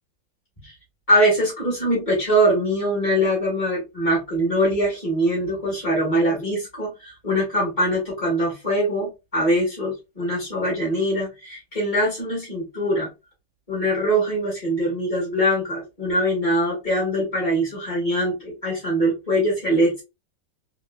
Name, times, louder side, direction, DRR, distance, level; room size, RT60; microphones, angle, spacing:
voice 1, 1.1-13.1 13.7-20.0, right 1 dB, 20° left, 1.9 m, -22 dB
3.6 x 2.9 x 2.2 m
omnidirectional pair, 2.0 m